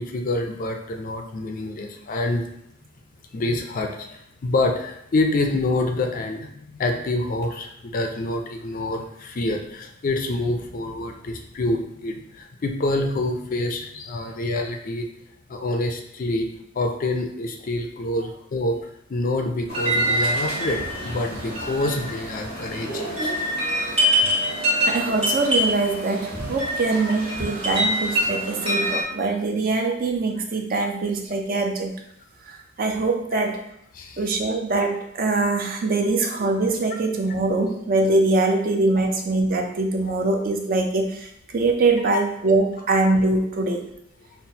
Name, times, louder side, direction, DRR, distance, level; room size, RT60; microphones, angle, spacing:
voice 1, 0.0-2.5 3.3-15.1 15.5-16.5 16.8-18.8 19.1-23.3 33.9-34.2 36.0-36.1 42.1-42.2, left 2 dB, 40° left, 4 dB, 0.4 m, -26 dB
sound 1, 19.7-29.0, equal, 30° right, 1.2 m, -25 dB
voice 2, 24.8-31.9 32.5-33.6 34.2-43.8, right 3 dB, 45° right, 3 dB, 0.5 m, -23 dB
5.6 x 2.1 x 2.7 m, 0.75 s
head